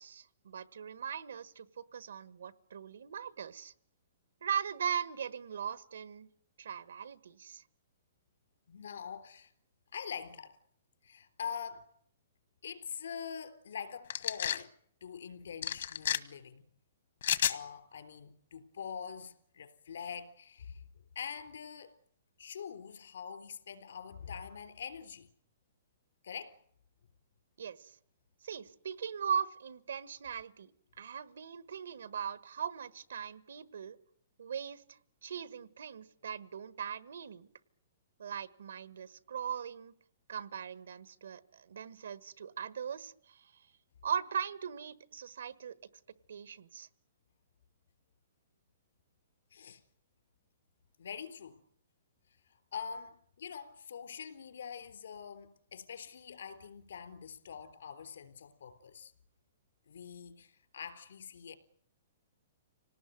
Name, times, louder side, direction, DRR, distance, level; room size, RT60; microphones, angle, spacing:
voice 1, 0.0-3.7 4.4-6.3 6.6-7.6 27.6-28.0 28.4-30.7 31.0-34.0 34.4-37.5 38.2-39.9 40.3-43.6 44.0-45.8 46.3-46.9, right 7 dB, 90° right, 1.4 m, -39 dB
voice 2, 8.7-9.5 9.9-10.6 11.0-11.9 12.6-14.7 15.0-16.6 17.5-20.8 21.2-22.0 22.4-25.3 26.2-26.6 49.5-49.8 51.0-51.6 52.5-59.1 59.9-61.6, left 7 dB, 80° left, 3.6 m, -44 dB
sound 1, 14.1-14.6 15.6-16.2 17.2-17.6, left 10 dB, 60° left, 1.2 m, -31 dB
27.0 x 18.5 x 9.3 m
hypercardioid pair, 170°, 0 cm